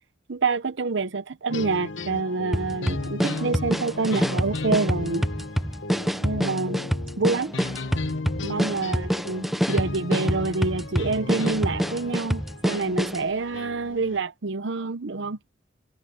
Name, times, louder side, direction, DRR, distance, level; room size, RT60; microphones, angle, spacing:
voice 1, 0.3-5.2 6.2-6.8 7.2-7.5 8.4-15.4, right 4 dB, 75° right, 0.8 m, -27 dB
sound 1, 1.5-14.2, left 3 dB, 80° left, 1.2 m, -35 dB
sound 2, 2.5-13.3, equal, ahead, 0.4 m, -27 dB
head